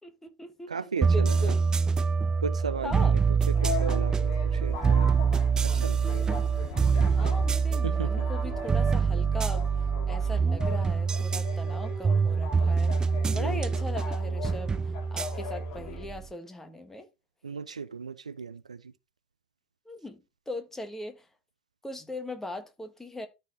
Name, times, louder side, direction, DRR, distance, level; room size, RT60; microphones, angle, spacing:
voice 1, 0.0-1.6 2.8-3.1 7.1-9.7 10.1-13.0 13.3-14.8 15.1-17.1 19.8-20.2 20.5-21.3 21.8-23.3, left 1 dB, 10° left, 1.6 m, -39 dB
voice 2, 0.7-1.5 2.4-5.1 5.6-6.2 7.8-8.3 13.3-13.6 17.4-18.9, right 5 dB, 85° right, 0.5 m, -36 dB
sound 1, 1.0-16.3, right 5 dB, 20° right, 0.3 m, -25 dB
sound 2, 3.5-16.1, left 6 dB, 50° left, 2.5 m, -41 dB
13.0 x 4.4 x 3.1 m
figure-of-eight pair, 75°, 4 cm